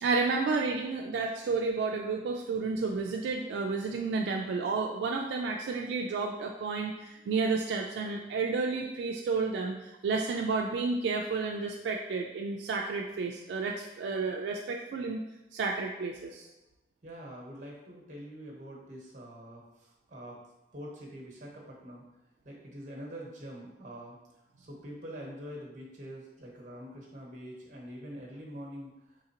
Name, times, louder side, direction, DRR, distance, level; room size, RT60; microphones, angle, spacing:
voice 1, 0.0-15.2 15.5-16.5, right 4 dB, 75° right, 1 dB, 0.3 m, -31 dB
voice 2, 17.0-20.4 20.7-22.0 22.4-24.2 24.6-29.1, equal, 45° right, -1 dB, 0.9 m, -45 dB
3.8 x 3.2 x 2.8 m, 0.98 s
head